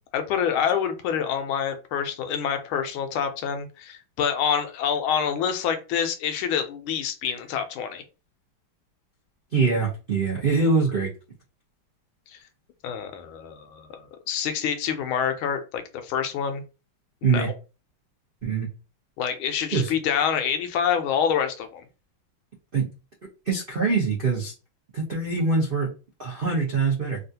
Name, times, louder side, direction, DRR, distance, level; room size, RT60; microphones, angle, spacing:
voice 1, 0.1-8.0 12.3-12.4 12.8-16.6 17.2-17.5 19.2-21.9, left 8 dB, 80° left, 8 dB, 1.4 m, -27 dB
voice 2, 9.5-11.1 17.2-17.5 18.4-18.7 19.7-19.9 22.7-22.9 23.5-24.5 24.9-25.9 26.2-27.2, right 4 dB, 65° right, -4 dB, 0.5 m, -23 dB
3.5 x 2.4 x 2.7 m, 0.31 s
omnidirectional pair, 2.3 m